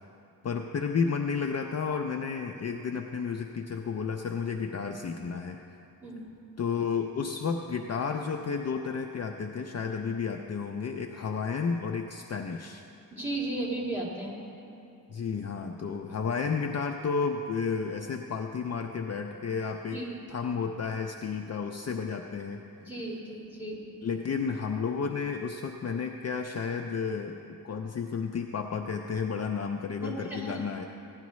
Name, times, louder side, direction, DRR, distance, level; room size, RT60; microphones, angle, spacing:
voice 1, 0.4-5.6 6.6-12.8 15.1-20.0 20.3-22.6 24.0-27.4 27.6-30.9, left 5 dB, 45° left, 3 dB, 0.4 m, -32 dB
voice 2, 13.1-14.4 19.9-20.2 22.8-23.8 30.0-30.6, right 2 dB, 5° right, -4 dB, 2.1 m, -35 dB
16.0 x 10.5 x 3.1 m, 2.7 s
wide cardioid pair, 140°, 38 cm